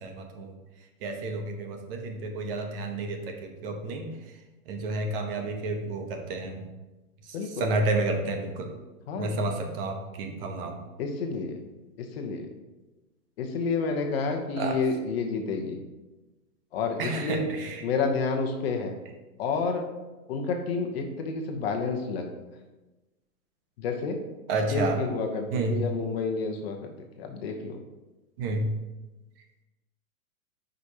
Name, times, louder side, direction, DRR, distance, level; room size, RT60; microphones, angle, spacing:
voice 1, 0.0-0.5 1.0-4.1 4.7-6.6 7.6-8.7 9.2-10.7 14.6-14.8 17.0-17.8 24.5-25.0 25.5-25.8 28.4-28.7, right 2 dB, 40° right, 4 dB, 1.0 m, -30 dB
voice 2, 7.3-7.7 9.1-9.4 11.0-11.6 12.0-12.5 13.4-15.8 16.7-17.5 17.8-18.9 19.4-19.8 20.3-22.3 23.8-24.2 24.7-26.9 27.2-27.8, left 4 dB, 45° left, 4 dB, 1.0 m, -29 dB
9.0 x 5.2 x 2.9 m, 1.1 s
hypercardioid pair, 135°, 44 cm